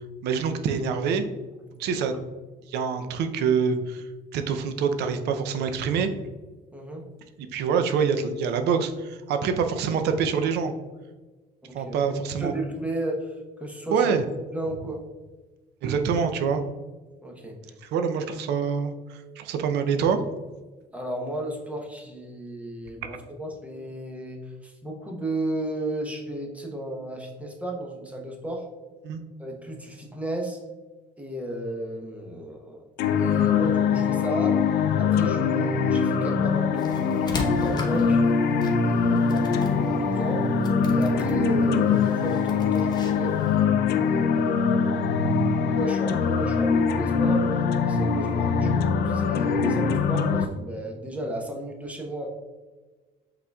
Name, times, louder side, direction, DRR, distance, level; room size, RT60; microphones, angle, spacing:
voice 1, 0.2-1.3 1.8-2.1 2.7-4.0 4.3-6.1 7.5-10.7 11.7-12.5 13.9-14.2 15.8-16.6 17.8-20.2 29.0-29.2 48.7-48.8, right 6 dB, 80° right, 8 dB, 0.5 m, -25 dB
voice 2, 6.7-7.0 11.7-12.0 12.4-14.1 14.5-15.0 17.2-17.7 20.9-28.7 29.4-30.6 31.2-32.8 33.2-34.6 35.0-38.2 38.8-40.5 40.9-43.4 44.0-47.4 47.8-52.3, right 1 dB, 10° right, 0 dB, 0.9 m, -34 dB
sound 1, 33.0-50.4, left 5 dB, 70° left, 0.5 m, -23 dB
sound 2, 36.8-43.6, left 3 dB, 25° left, 1.0 m, -37 dB
5.6 x 3.9 x 2.3 m, 1.3 s
cardioid pair, 110°, 17 cm